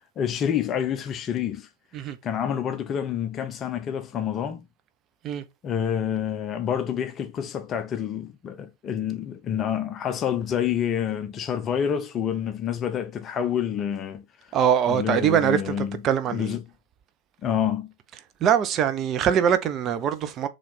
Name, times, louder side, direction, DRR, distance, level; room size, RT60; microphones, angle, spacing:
voice 1, 0.2-1.7 2.2-4.7 5.6-14.2 14.9-16.0 16.3-16.6 17.4-17.9, left 9 dB, 30° left, 0.6 m, -28 dB
voice 2, 14.5-16.6 18.4-20.5, right 9 dB, 30° right, 0.6 m, -23 dB
4.0 x 3.2 x 4.1 m
figure-of-eight pair, 90°, 0 cm